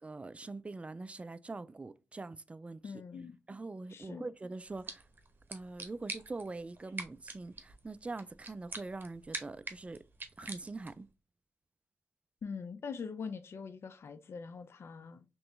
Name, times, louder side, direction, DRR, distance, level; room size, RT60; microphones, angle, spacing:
voice 1, 0.0-2.9 3.5-5.0 5.5-10.0 10.4-11.1, right 3 dB, 25° right, 0.3 m, -43 dB
voice 2, 2.8-3.4 3.9-4.3 12.4-15.2, left 5 dB, 60° left, 0.4 m, -43 dB
sound 1, 4.6-11.1, right 3 dB, 45° right, 0.9 m, -47 dB
3.2 x 3.0 x 3.1 m
cardioid pair, 55°, 5 cm